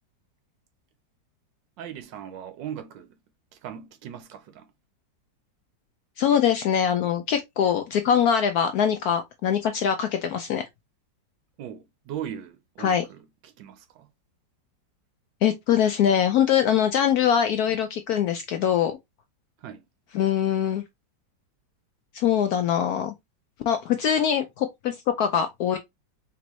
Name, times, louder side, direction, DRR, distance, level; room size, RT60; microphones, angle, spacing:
voice 1, 1.8-3.2 3.5-4.7 11.6-14.1 19.6-19.8, right 9 dB, 75° right, 1.4 m, -39 dB
voice 2, 6.2-10.7 12.8-13.0 15.4-19.0 20.1-20.8 22.1-23.1 23.7-25.8, left 8 dB, 75° left, 0.9 m, -23 dB
4.4 x 3.0 x 3.0 m
omnidirectional pair, 2.0 m